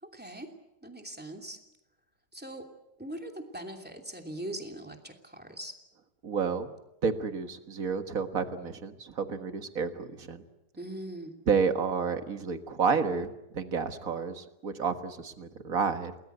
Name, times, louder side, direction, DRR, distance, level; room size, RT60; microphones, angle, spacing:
voice 1, 0.0-0.5 0.8-1.6 2.3-2.7 3.0-5.8 10.8-11.4, right 1 dB, 5° right, 3 dB, 2.8 m, -41 dB
voice 2, 6.2-6.7 7.0-10.4 11.5-16.1, right 5 dB, 55° right, 8 dB, 1.9 m, -30 dB
29.5 x 19.5 x 8.1 m, 0.90 s
omnidirectional pair, 1.9 m